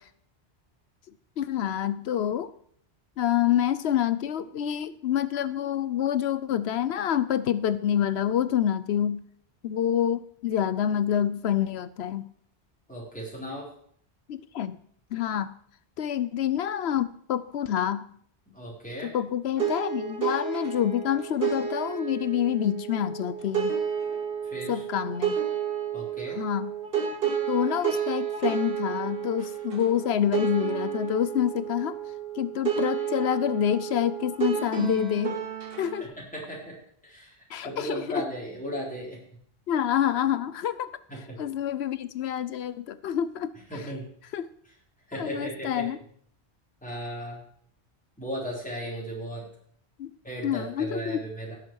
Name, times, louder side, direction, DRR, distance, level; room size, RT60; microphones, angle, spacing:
voice 1, 1.4-2.5 3.2-9.2 9.6-12.2 14.3-14.8 15.1-15.5 16.0-18.0 19.0-23.8 24.7-25.4 26.4-26.7 27.5-32.0 32.4-35.4 35.8-36.1 37.5-38.2 39.7-40.9 41.4-43.8 44.3-44.5 45.1-46.0 50.0-50.1 50.4-51.2, left 10 dB, 75° left, 15 dB, 0.9 m, -27 dB
voice 2, 12.9-13.7 18.5-19.2 24.4-24.8 25.9-26.4 29.4-29.5 36.0-36.7 37.0-39.2 41.1-41.4 43.7-44.1 45.1-45.9 46.8-47.4 48.2-49.5 50.2-51.5, equal, 5° left, -4 dB, 4.0 m, -36 dB
sound 1, 19.6-36.0, right 8 dB, 60° right, 2.1 m, -31 dB
17.0 x 7.5 x 4.7 m, 0.63 s
omnidirectional pair, 1.1 m